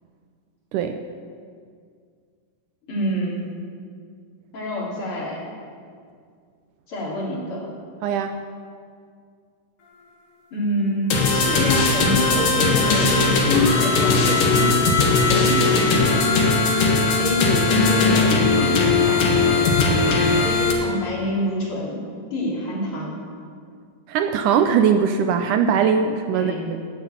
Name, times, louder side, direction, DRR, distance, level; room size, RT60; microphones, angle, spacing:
voice 1, 2.9-3.5 4.5-5.4 6.9-7.7 10.5-14.8 15.2-16.2 17.2-19.8 20.3-22.0 22.3-23.2 26.3-26.6, left 1 dB, 40° left, -5 dB, 3.7 m, -26 dB
voice 2, 8.0-8.4 24.1-26.5, right 7 dB, 75° right, 7 dB, 2.0 m, -20 dB
sound 1, 11.1-20.7, left 3 dB, 70° left, 3.0 m, -19 dB
10.0 x 10.0 x 8.6 m, 2.1 s
omnidirectional pair, 4.0 m